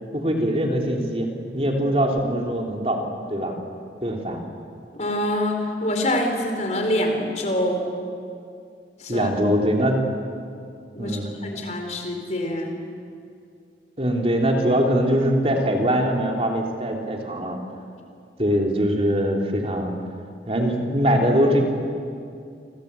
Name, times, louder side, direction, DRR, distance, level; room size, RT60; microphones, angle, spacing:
voice 1, 0.1-1.3 1.5-3.0 3.3-3.6 4.0-4.4 9.1-10.0 11.0-11.3 14.0-17.6 18.4-19.9 20.5-21.6, equal, 35° right, 1 dB, 3.4 m, -22 dB
voice 2, 4.9-7.9 9.0-9.3 10.9-12.8, left 1 dB, 40° left, 4 dB, 4.4 m, -25 dB
29.0 x 24.0 x 8.3 m, 2.4 s
head